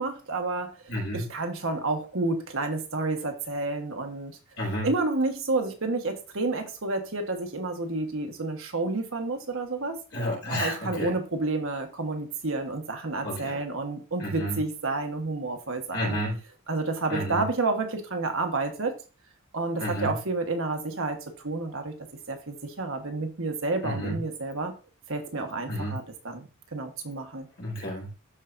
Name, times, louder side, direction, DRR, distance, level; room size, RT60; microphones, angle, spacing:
voice 1, 0.0-0.7 1.1-4.4 4.8-10.0 10.6-16.2 16.7-19.0 19.5-21.9 22.3-24.7 25.1-27.5, right 3 dB, 65° right, 1.3 m, -30 dB
voice 2, 0.9-1.3 4.6-4.9 10.1-11.1 13.2-13.6 14.2-14.6 15.9-16.4 17.1-17.4 19.8-20.2 23.8-24.2 25.7-26.0 27.6-28.1, equal, 75° left, 4.2 m, -31 dB
13.0 x 4.4 x 2.6 m
head